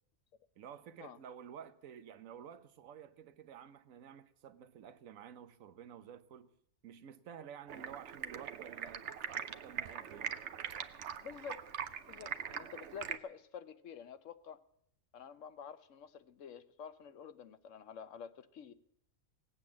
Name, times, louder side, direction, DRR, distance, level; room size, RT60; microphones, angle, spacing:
voice 1, 0.6-6.5 6.8-10.4, right 8 dB, 85° right, 1.2 m, -52 dB
Stream, 7.7-13.2, right 8 dB, 65° right, 1.0 m, -42 dB
voice 2, 11.2-11.7 12.1-14.6 15.1-18.7, left 7 dB, 70° left, 1.1 m, -49 dB
18.0 x 8.6 x 7.2 m
omnidirectional pair, 1.4 m